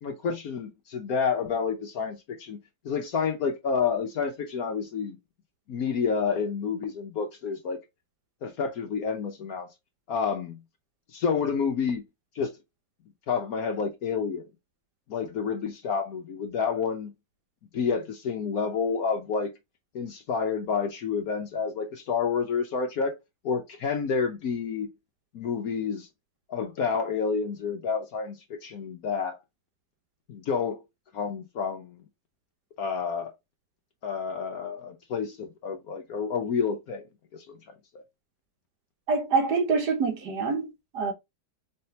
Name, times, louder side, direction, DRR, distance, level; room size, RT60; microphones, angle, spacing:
voice 1, 0.0-2.6 2.8-5.2 5.7-7.8 8.4-9.7 10.1-10.6 11.1-12.0 12.3-12.5 13.3-14.4 15.1-17.1 17.7-19.5 19.9-23.1 23.4-24.9 25.3-26.1 26.5-29.4 30.3-30.8 31.1-32.0 32.8-33.3 34.0-37.0 37.3-37.6 37.9-38.0, left 6 dB, 65° left, 1.0 m, -29 dB
voice 2, 39.1-41.1, right 4 dB, 65° right, 1.5 m, -26 dB
4.6 x 3.3 x 2.8 m
omnidirectional pair, 2.0 m